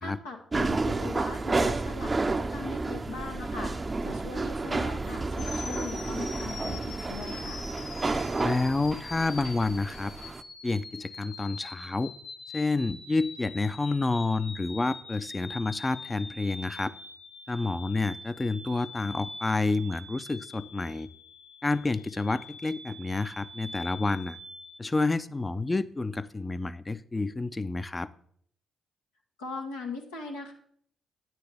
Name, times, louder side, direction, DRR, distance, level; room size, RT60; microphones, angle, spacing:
voice 1, 0.0-7.6 29.4-30.5, left 4 dB, 90° left, -1 dB, 1.0 m, -40 dB
sound 1, 0.5-10.4, right 3 dB, 30° right, 0.5 m, -31 dB
sound 2, 5.4-24.7, left 3 dB, 65° left, 2.5 m, -44 dB
voice 2, 8.4-10.1 10.6-12.1 12.5-16.9 17.5-21.1 21.6-24.4 24.8-28.1, left 3 dB, 25° left, 15 dB, 0.5 m, -29 dB
9.4 x 9.3 x 3.5 m, 0.62 s
hypercardioid pair, 40°, 0 cm